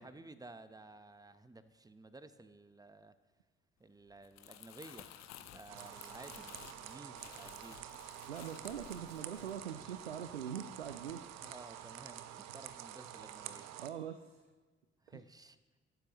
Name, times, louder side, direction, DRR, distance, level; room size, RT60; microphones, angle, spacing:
voice 1, 0.0-3.1 3.8-8.0 11.4-13.8 15.0-15.6, right 2 dB, 10° right, 12 dB, 1.0 m, -54 dB
Crumpling crinkling, 4.1-10.5 10.8-11.1, left 11 dB, 60° left, 1.0 m, -55 dB
sound 1, 5.7-13.9, right 11 dB, 60° right, 0.8 m, -49 dB
voice 2, 8.3-11.4 13.8-14.4 15.1-15.2, right 8 dB, 85° right, 9 dB, 0.5 m, -43 dB
23.5 x 11.5 x 3.1 m, 1.4 s
figure-of-eight pair, 45°, 31 cm